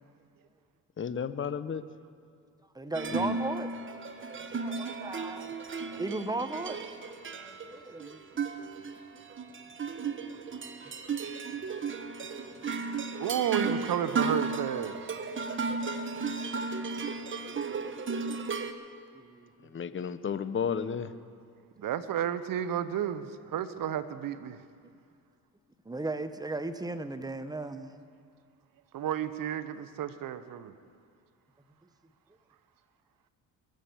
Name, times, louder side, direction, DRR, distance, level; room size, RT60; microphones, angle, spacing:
voice 1, 1.0-1.8 3.1-3.4 19.6-21.1, left 7 dB, 35° left, 13 dB, 0.8 m, -33 dB
voice 2, 2.7-3.7 4.2-5.5 5.9-6.8 7.3-8.2 19.1-19.7 25.8-28.0 29.9-30.0, right 2 dB, 10° right, 10 dB, 0.9 m, -36 dB
sound 1, 2.9-18.7, right 4 dB, 30° right, 1.1 m, -34 dB
voice 3, 13.2-15.0 21.8-24.6 28.9-30.7, right 10 dB, 60° right, 12 dB, 0.9 m, -32 dB
21.5 x 7.7 x 7.0 m, 2.2 s
cardioid pair, 80°, 38 cm